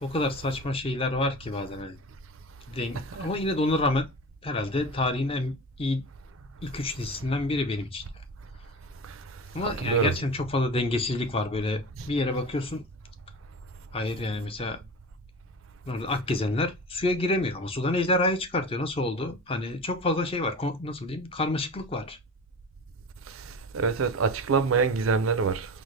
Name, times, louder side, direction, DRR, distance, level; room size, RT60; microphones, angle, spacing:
voice 1, 0.0-2.0 2.7-4.1 4.4-6.1 6.6-8.0 9.5-12.8 13.9-14.8 15.9-22.2, left 2 dB, 25° left, 0.5 m, -28 dB
voice 2, 9.6-10.1 23.7-25.7, right 5 dB, 75° right, 0.4 m, -24 dB
4.1 x 2.0 x 3.1 m
head